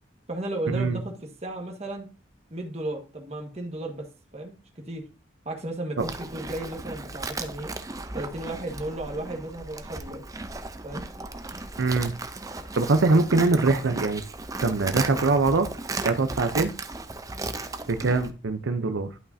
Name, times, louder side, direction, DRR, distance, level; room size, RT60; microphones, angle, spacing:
voice 1, 0.3-1.1 1.4-2.1 2.5-4.1 4.3-5.0 5.4-7.7 8.1-10.3 10.8-11.0, right 1 dB, 35° right, 2 dB, 1.5 m, -34 dB
Livestock farm animals working animals, 6.0-18.3, right 3 dB, 20° right, 0.5 m, -35 dB
voice 2, 11.8-12.1 12.7-14.2 14.6-15.7 16.0-16.7 17.9-19.1, right 3 dB, 85° right, 8 dB, 0.6 m, -23 dB
11.5 x 5.6 x 2.7 m, 0.35 s
head